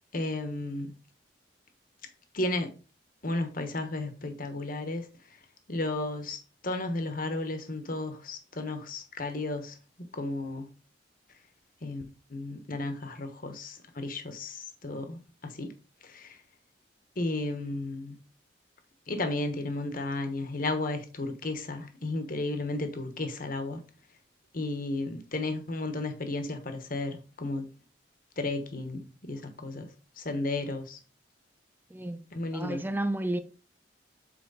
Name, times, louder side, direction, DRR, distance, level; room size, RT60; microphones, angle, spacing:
voice 1, 0.1-0.9 2.3-2.7 3.2-5.1 5.7-9.7 10.1-10.7 11.8-12.0 12.3-15.7 16.0-16.4 17.2-18.2 19.1-23.8 24.5-27.7 28.4-29.9 30.2-31.0 32.3-32.8, left 2 dB, 50° left, 1.2 m, -33 dB
voice 2, 32.5-33.4, right 1 dB, 10° right, 0.7 m, -31 dB
7.9 x 4.4 x 4.0 m
head